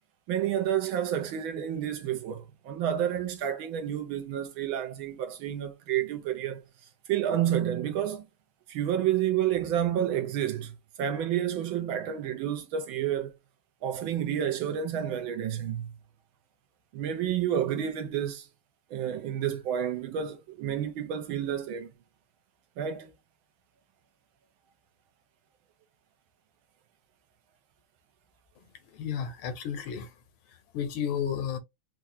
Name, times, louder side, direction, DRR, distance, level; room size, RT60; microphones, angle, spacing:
voice 1, 0.3-6.6 7.1-8.3 8.7-10.7 11.0-13.3 13.8-15.9 16.9-18.5 18.9-21.9 22.8-23.1, right 10 dB, 80° right, 1.5 m, -30 dB
voice 2, 28.9-30.1 30.7-31.6, left 8 dB, 85° left, 1.7 m, -32 dB
4.5 x 2.4 x 2.7 m
omnidirectional pair, 2.3 m